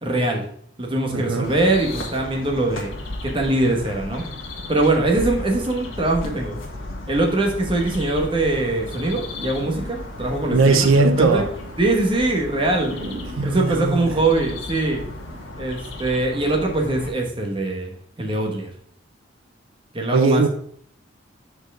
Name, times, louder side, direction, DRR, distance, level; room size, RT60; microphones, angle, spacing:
voice 1, 0.0-0.4 0.8-2.9 3.2-4.2 4.7-6.6 7.1-10.8 11.2-11.4 11.8-12.9 13.4-15.0 15.6-17.9 18.2-18.7 19.9-20.4, right 2 dB, 25° right, 1.2 m, -22 dB
voice 2, 1.1-1.5 10.5-11.5 13.4-14.2 20.1-20.5, right 3 dB, 85° right, 0.5 m, -19 dB
sound 1, 1.4-17.1, left 1 dB, 85° left, 1.5 m, -35 dB
sound 2, 7.3-15.5, right 1 dB, 60° right, 1.4 m, -42 dB
4.8 x 4.5 x 6.0 m
head